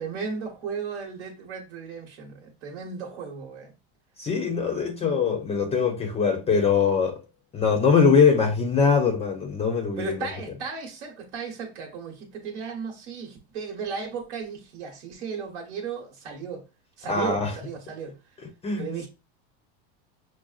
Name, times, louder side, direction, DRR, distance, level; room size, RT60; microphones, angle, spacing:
voice 1, 0.0-3.7 10.0-16.6 17.0-18.2 18.8-19.1, right 5 dB, 90° right, 1.1 m, -35 dB
voice 2, 4.2-7.2 7.5-10.2 17.1-17.5 18.6-18.9, left 5 dB, 20° left, 0.4 m, -22 dB
5.9 x 2.0 x 2.4 m
supercardioid pair, 135°, 34 cm